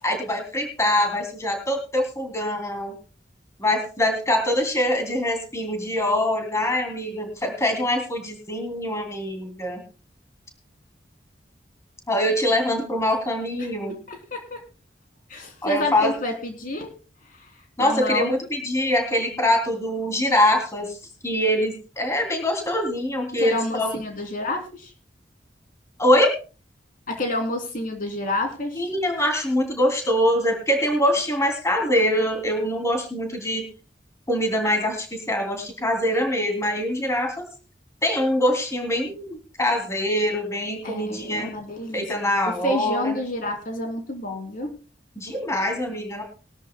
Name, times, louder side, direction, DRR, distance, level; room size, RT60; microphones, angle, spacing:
voice 1, 0.0-3.0 3.6-9.8 12.1-14.0 15.6-16.1 17.8-21.0 21.2-23.9 26.0-26.3 28.7-33.7 34.3-37.5 38.0-41.6 41.9-43.2 45.2-46.2, left 1 dB, 15° left, 3 dB, 2.9 m, -24 dB
voice 2, 15.3-16.9 17.8-18.3 23.4-24.9 27.1-28.9 40.8-42.0 42.6-44.7, left 1 dB, 50° left, 4 dB, 3.1 m, -28 dB
21.5 x 13.0 x 2.2 m, 0.34 s
head